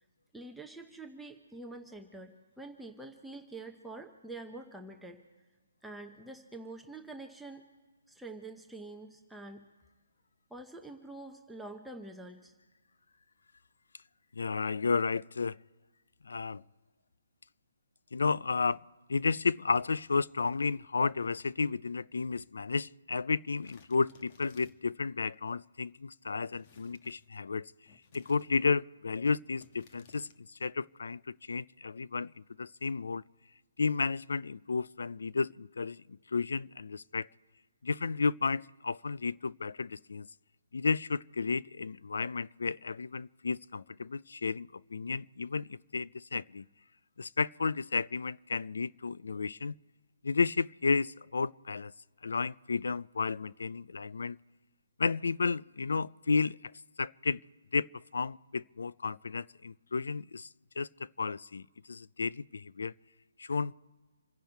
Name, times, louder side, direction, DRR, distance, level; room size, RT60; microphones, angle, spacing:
voice 1, 0.3-5.2 5.8-7.7 8.1-9.7 10.5-12.5, right 2 dB, ahead, 0.8 m, -46 dB
voice 2, 14.3-15.6 16.2-16.6 18.1-18.8 19.1-27.7 28.1-30.3 30.6-33.2 33.8-37.3 37.8-40.3 40.7-46.6 47.2-49.7 50.2-51.9 52.2-54.4 55.0-56.7 57.0-57.4 57.7-60.5 60.8-62.9 63.4-63.7, left 4 dB, 80° left, 0.4 m, -32 dB
sound 1, 23.6-24.9 26.5-27.3 27.8-28.7 29.6-30.4, left 5 dB, 40° left, 1.3 m, -60 dB
27.5 x 10.5 x 4.6 m
hypercardioid pair, 155°, 0 cm